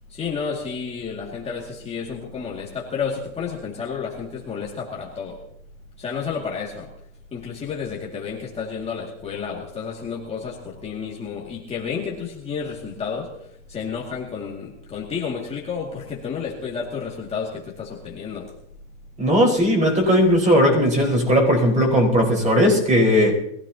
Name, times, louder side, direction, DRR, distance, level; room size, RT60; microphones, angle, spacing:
voice 1, 0.1-5.4 6.0-6.9 7.3-18.5, left 6 dB, 20° left, -3 dB, 2.3 m, -31 dB
voice 2, 19.2-23.3, equal, 20° right, 0 dB, 4.8 m, -17 dB
22.5 x 15.5 x 2.9 m, 0.77 s
supercardioid pair, 140°, 34 cm